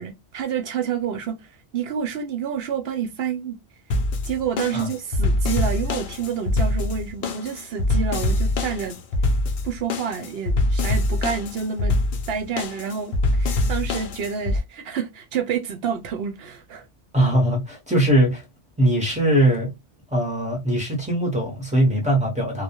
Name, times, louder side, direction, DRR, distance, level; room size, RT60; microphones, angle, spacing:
voice 1, 0.0-1.4 1.7-3.6 4.2-9.0 9.6-11.9 12.3-16.8, right 7 dB, 65° right, 0.8 m, -28 dB
sound 1, 3.9-14.6, left 2 dB, 70° left, 0.7 m, -24 dB
voice 2, 17.1-18.4 18.8-19.7 20.1-22.6, right 1 dB, 10° right, 0.7 m, -21 dB
2.2 x 2.0 x 2.8 m
omnidirectional pair, 1.2 m